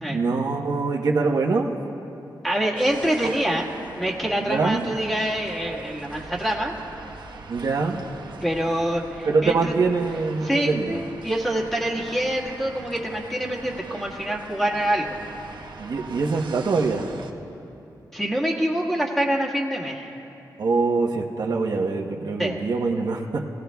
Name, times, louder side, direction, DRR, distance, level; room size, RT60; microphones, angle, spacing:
voice 1, 0.1-1.8 4.4-4.8 7.5-8.1 9.3-11.0 15.8-17.1 20.6-23.5, right 4 dB, 60° right, 0 dB, 1.0 m, -24 dB
voice 2, 2.4-3.7 4.0-6.7 8.4-9.7 10.4-15.2 18.1-20.1 22.4-22.6, right 1 dB, 5° left, -3 dB, 1.7 m, -25 dB
sound 1, 2.8-17.3, right 4 dB, 90° right, 1.1 m, -41 dB
28.5 x 17.0 x 2.3 m, 2.9 s
wide cardioid pair, 175°, 8 cm